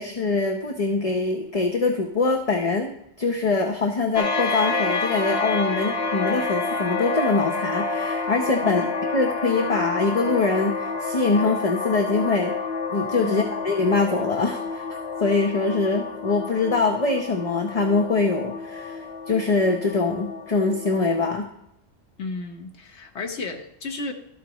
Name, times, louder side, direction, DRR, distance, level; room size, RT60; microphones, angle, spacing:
voice 1, 0.0-2.9 3.2-8.8 9.1-12.5 12.9-21.5, left 3 dB, 35° left, 3 dB, 0.9 m, -23 dB
sound 1, 4.1-21.4, left 3 dB, 65° left, 1.5 m, -29 dB
voice 2, 22.2-24.1, left 4 dB, 90° left, 3 dB, 1.4 m, -33 dB
13.0 x 8.2 x 3.1 m, 0.78 s
omnidirectional pair, 1.1 m